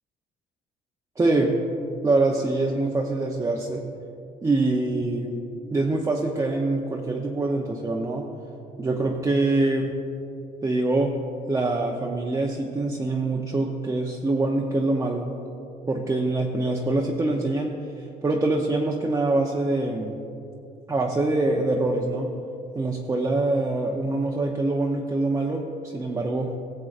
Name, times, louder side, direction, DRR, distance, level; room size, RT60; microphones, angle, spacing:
voice 1, 1.2-1.6 2.0-3.8 4.4-5.4 5.7-8.3 8.8-10.0 10.6-11.2 11.5-15.3 15.9-20.2 20.9-22.3 22.7-26.5, right 2 dB, 20° right, -1 dB, 0.7 m, -24 dB
17.5 x 7.6 x 2.5 m, 2.7 s
cardioid pair, 110°, 17 cm